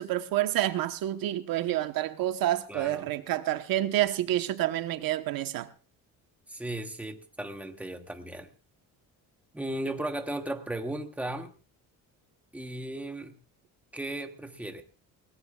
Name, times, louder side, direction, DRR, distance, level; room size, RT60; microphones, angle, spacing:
voice 1, 0.0-5.7, right 13 dB, 70° right, 9 dB, 1.2 m, -28 dB
voice 2, 2.7-3.1 6.5-8.5 9.5-11.5 12.5-13.4 13.9-14.8, right 1 dB, 5° right, 6 dB, 1.1 m, -36 dB
21.5 x 18.0 x 2.4 m, 0.34 s
cardioid pair, 170°, 36 cm